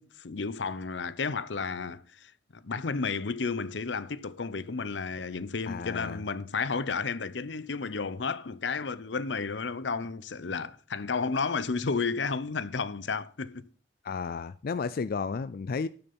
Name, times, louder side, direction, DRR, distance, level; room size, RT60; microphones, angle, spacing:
voice 1, 0.0-13.7, left 4 dB, 85° left, 0.7 m, -32 dB
voice 2, 5.7-6.2 14.0-15.9, left 5 dB, 55° left, 0.4 m, -33 dB
12.5 x 7.0 x 5.4 m
head